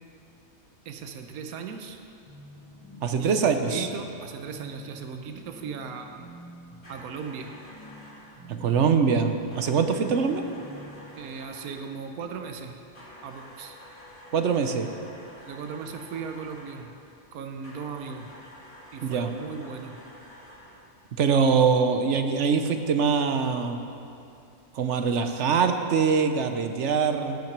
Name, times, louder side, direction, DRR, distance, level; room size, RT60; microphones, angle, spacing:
voice 1, 0.8-2.0 3.2-6.3 6.9-7.5 11.2-12.8 13.2-13.8 15.5-16.9 17.3-18.3 18.9-20.0, right 6 dB, 85° right, 5 dB, 1.2 m, -37 dB
sound 1, 2.3-11.1, equal, 25° right, 2.1 m, -48 dB
voice 2, 3.0-3.9 8.5-10.4 14.3-14.9 19.0-19.3 21.2-23.8 24.7-27.4, right 6 dB, 60° right, 7 dB, 1.0 m, -23 dB
sound 2, 6.8-8.4 9.5-12.0 12.9-16.9 17.6-20.9, left 1 dB, 75° left, 3.2 m, -49 dB
16.5 x 5.9 x 6.0 m, 2.6 s
omnidirectional pair, 1.5 m